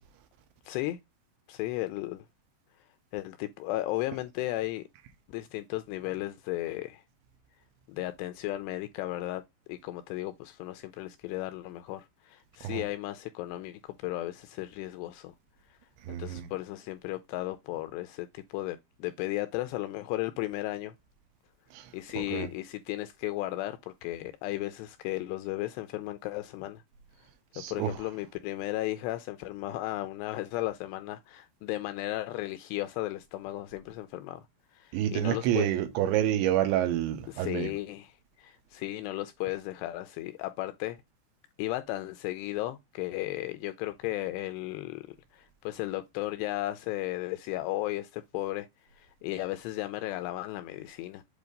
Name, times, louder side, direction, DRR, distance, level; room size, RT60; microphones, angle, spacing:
voice 1, 0.7-1.0 1.5-2.3 3.1-4.8 5.3-7.0 7.9-9.4 9.7-15.3 16.1-20.9 21.9-26.8 27.6-34.4 34.7-35.7 37.3-41.0 41.6-48.7 48.9-51.2, left 16 dB, 85° left, 2.5 m, -35 dB
voice 2, 16.1-16.5 21.7-21.8 22.2-22.5 27.5-27.9 34.9-37.7, right 11 dB, 80° right, 3.3 m, -28 dB
8.1 x 2.8 x 5.1 m
omnidirectional pair, 5.3 m